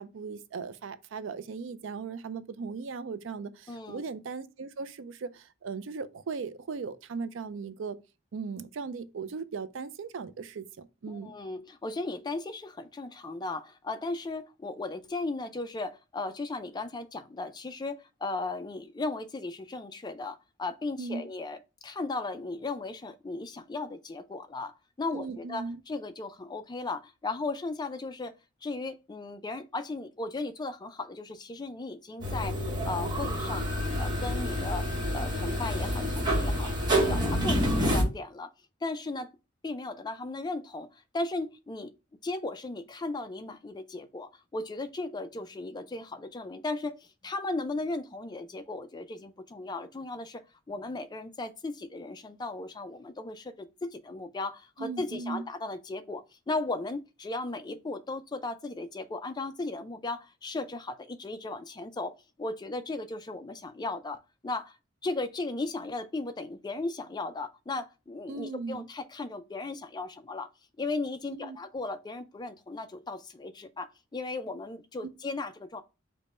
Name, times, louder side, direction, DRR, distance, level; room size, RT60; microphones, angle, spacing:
voice 1, 0.0-8.0 8.3-11.3 21.0-21.3 25.1-25.8 36.9-37.6 54.8-55.4 68.3-68.9 71.3-71.6, right 4 dB, 65° right, 0.4 m, -38 dB
voice 2, 3.7-4.0 11.1-28.3 28.6-32.6 32.8-33.7 34.0-34.9 35.1-38.5 38.8-39.3 39.6-42.0 42.2-64.8 65.0-70.5 70.8-75.8, left 3 dB, 20° left, 0.4 m, -36 dB
sound 1, 32.2-38.0, equal, 20° right, 1.0 m, -28 dB
5.1 x 2.1 x 4.2 m
head